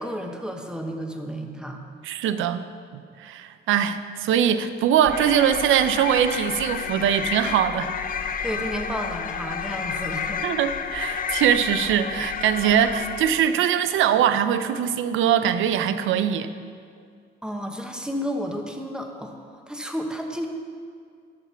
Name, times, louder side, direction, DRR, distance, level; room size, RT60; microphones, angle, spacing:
voice 1, 0.0-1.8 8.4-10.5 17.4-20.5, equal, 5° right, 3 dB, 1.2 m, -32 dB
voice 2, 2.0-2.6 2.9-7.9 10.4-16.5, right 9 dB, 85° right, 11 dB, 0.6 m, -22 dB
sound 1, 5.1-13.6, left 7 dB, 45° left, 0.6 m, -31 dB
13.5 x 5.9 x 5.7 m, 2.2 s
cardioid pair, 90°, 20 cm